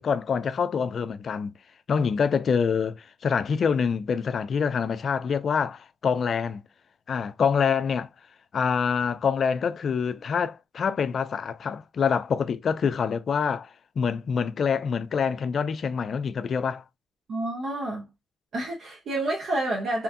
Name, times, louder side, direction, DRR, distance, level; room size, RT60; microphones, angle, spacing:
voice 1, 0.0-1.5 1.9-6.6 7.1-8.1 8.5-16.8, left 6 dB, 50° left, 0.3 m, -26 dB
voice 2, 17.3-18.0 18.5-20.0, right 2 dB, 60° right, 1.0 m, -29 dB
3.0 x 2.4 x 2.5 m
cardioid pair, 90°, 0 cm